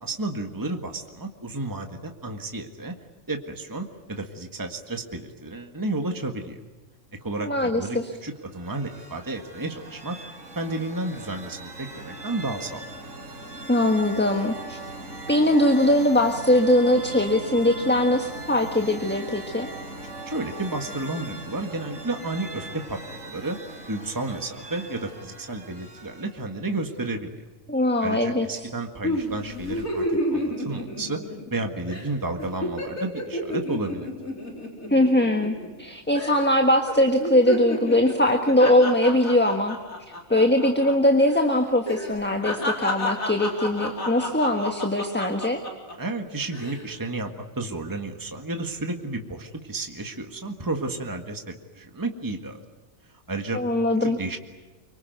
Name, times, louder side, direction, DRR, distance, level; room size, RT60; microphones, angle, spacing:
voice 1, 0.0-2.9 3.3-6.6 7.2-10.2 10.5-12.8 20.3-23.6 23.9-27.4 28.0-31.2 31.5-34.1 46.0-52.6 53.3-53.6 54.0-54.4, right 2 dB, 15° right, 4 dB, 1.7 m, -32 dB
voice 2, 7.4-8.1 13.7-14.8 15.3-19.7 27.7-28.7 34.9-39.8 40.3-45.6 53.5-54.2, left 1 dB, 10° left, 4 dB, 1.4 m, -21 dB
sound 1, 8.4-26.6, right 1 dB, 65° right, 5.0 m, -40 dB
sound 2, 29.0-31.6 31.9-32.1 32.4-35.8 36.1-36.6 36.9-40.9 41.2-41.4 41.8-45.9 46.4-46.8, left 1 dB, 80° left, 4.6 m, -31 dB
24.5 x 24.5 x 9.3 m, 1.2 s
omnidirectional pair, 1.4 m